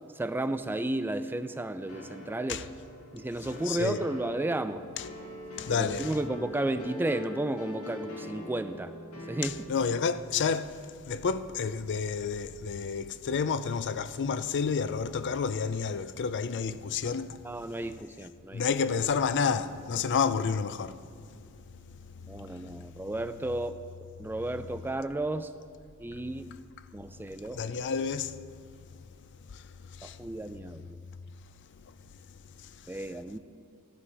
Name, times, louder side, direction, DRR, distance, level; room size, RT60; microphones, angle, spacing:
voice 1, 0.2-2.7 3.1-4.8 5.7-8.9 9.3-9.7 17.4-18.6 22.3-23.8 24.2-25.5 26.0-26.5 26.9-27.7 30.0-31.0 32.9-33.4, right 1 dB, 10° right, 0.3 m, -33 dB
sound 1, 1.9-10.2, left 1 dB, 75° left, 2.3 m, -43 dB
voice 2, 3.7-4.0 5.6-6.1 9.4-10.8 11.1-17.4 18.5-21.0 21.3-21.4 22.6-22.8 27.5-28.3 30.0-30.2, left 6 dB, 55° left, 0.5 m, -30 dB
15.0 x 11.5 x 4.9 m
head